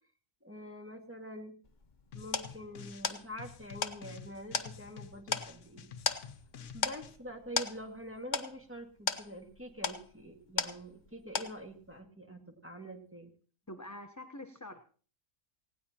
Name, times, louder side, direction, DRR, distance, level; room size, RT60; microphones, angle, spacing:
voice 1, 0.4-1.5 2.1-5.9 6.7-13.3, equal, 10° right, 3 dB, 1.9 m, -46 dB
sound 1, 1.6-11.1 11.3-11.9, left 5 dB, 40° left, 1.0 m, -37 dB
sound 2, 2.1-3.1 3.4-7.2, left 6 dB, 70° left, 1.2 m, -50 dB
voice 2, 13.7-14.8, left 1 dB, 15° left, 6 dB, 0.8 m, -45 dB
19.0 x 17.5 x 2.9 m, 0.42 s
omnidirectional pair, 1.4 m